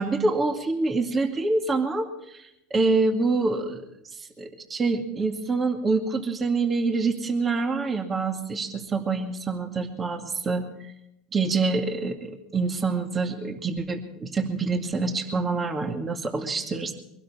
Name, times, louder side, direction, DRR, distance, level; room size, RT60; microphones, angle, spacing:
voice 1, 0.0-3.8 4.1-10.9 11.3-16.9, right 3 dB, 25° right, 4 dB, 2.2 m, -26 dB
23.0 x 12.5 x 4.3 m, 0.82 s
supercardioid pair, 110°, 0 cm